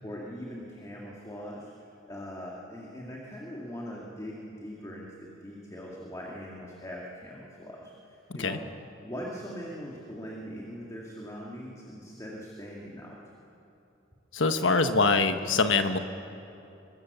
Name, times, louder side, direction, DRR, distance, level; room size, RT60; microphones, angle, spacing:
voice 1, 0.0-1.7 2.1-8.6 9.0-13.2, equal, 15° left, -3 dB, 2.2 m, -41 dB
voice 2, 14.3-16.0, left 3 dB, 70° left, 8 dB, 1.1 m, -24 dB
24.0 x 20.0 x 6.9 m, 2.8 s
head